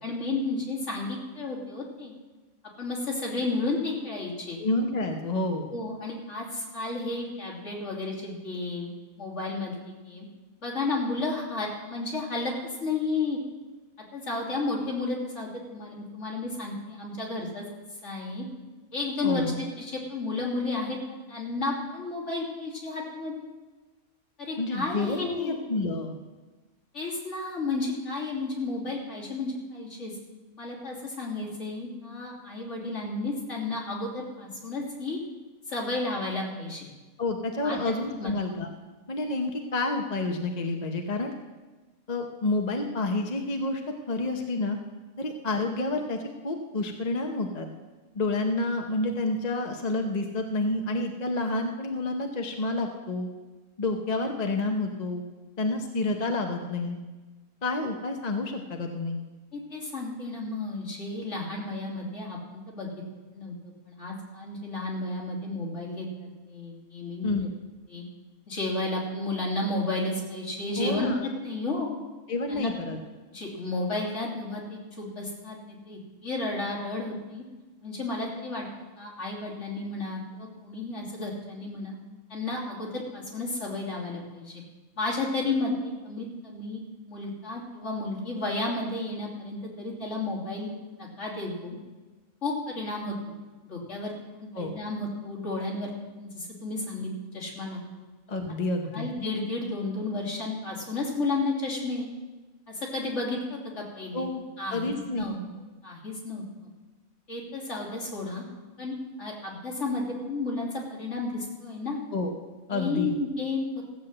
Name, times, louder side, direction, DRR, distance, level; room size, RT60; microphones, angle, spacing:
voice 1, 0.0-2.1 2.8-4.6 5.7-8.9 9.2-10.2 10.6-12.5 12.8-13.4 14.1-17.6 18.0-18.5 18.9-23.3 24.4-25.6 26.9-30.2 30.6-35.2 35.7-36.9 37.6-37.8 38.2-38.3 59.5-62.9 63.3-67.5 67.9-68.0 68.5-71.9 72.5-72.7 73.3-77.4 77.8-78.7 79.0-81.9 82.3-84.6 85.0-90.7 91.0-91.8 92.4-93.3 93.6-94.1 94.4-95.9 96.2-97.8 98.9-102.1 102.7-104.3 104.6-105.4 105.8-106.7 107.3-108.4 108.8-112.0 112.7-113.7, left 2 dB, 55° left, -3 dB, 3.4 m, -32 dB
voice 2, 4.6-5.7 19.2-19.6 24.6-26.1 37.2-38.7 39.1-41.3 42.1-43.8 44.1-44.8 45.2-47.7 48.1-53.3 53.8-55.2 55.6-57.0 57.6-59.2 67.2-67.5 70.8-71.2 72.3-73.0 94.5-94.7 98.3-99.1 104.1-104.4 104.7-105.3 112.1-112.3 112.7-113.1, left 2 dB, 35° left, 3 dB, 0.9 m, -29 dB
15.5 x 7.6 x 7.7 m, 1.2 s
omnidirectional pair, 1.5 m